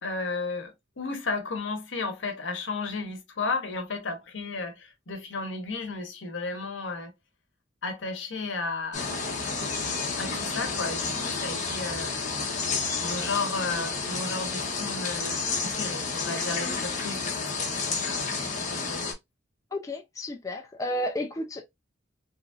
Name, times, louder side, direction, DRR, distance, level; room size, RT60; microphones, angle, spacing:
voice 1, 0.0-7.1 7.8-9.1 10.2-12.2 13.0-19.0, left 3 dB, 80° left, 0.8 m, -34 dB
sound 1, 8.9-19.1, left 4 dB, 40° left, 0.8 m, -30 dB
voice 2, 19.7-21.6, left 1 dB, 15° left, 0.4 m, -32 dB
3.0 x 2.4 x 2.4 m
head